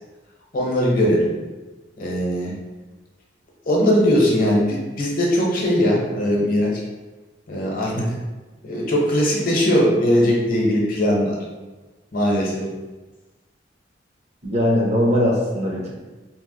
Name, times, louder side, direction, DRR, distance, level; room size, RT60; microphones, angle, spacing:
voice 1, 0.5-1.3 2.0-2.5 3.6-6.8 7.5-8.1 8.6-11.4 12.1-12.7, equal, 50° left, -3 dB, 0.7 m, -20 dB
voice 2, 14.4-15.9, equal, 35° right, -3 dB, 0.6 m, -20 dB
2.8 x 2.1 x 3.7 m, 1.2 s
head